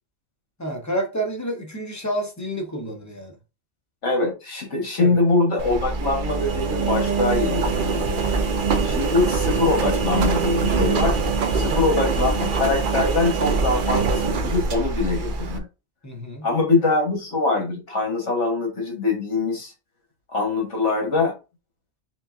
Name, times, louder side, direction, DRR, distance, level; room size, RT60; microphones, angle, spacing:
voice 1, 0.6-3.4 5.0-5.2 11.5-11.8 16.0-16.5, right 1 dB, 15° left, 0.8 m, -29 dB
voice 2, 4.0-8.2 8.8-11.2 11.5-15.7 16.4-19.7 20.3-21.3, left 3 dB, 65° left, 1.7 m, -23 dB
Engine, 5.6-15.6, right 4 dB, 55° right, 0.6 m, -23 dB
5.7 x 2.6 x 2.5 m
omnidirectional pair, 1.3 m